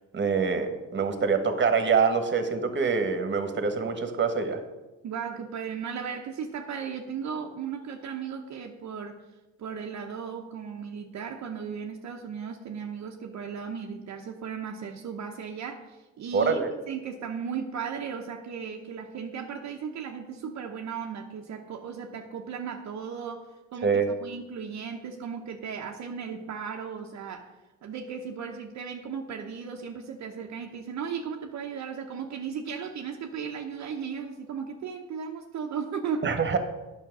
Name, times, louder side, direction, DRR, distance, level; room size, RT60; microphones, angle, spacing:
voice 1, 0.1-4.6 16.3-16.7 23.8-24.1 36.2-36.6, right 5 dB, 40° right, 8 dB, 1.4 m, -25 dB
voice 2, 5.0-9.2 9.6-16.6 16.9-27.5 27.8-36.3, right 6 dB, 65° right, 2 dB, 0.9 m, -36 dB
9.3 x 6.0 x 6.0 m, 1.1 s
cardioid pair, 90°, 30 cm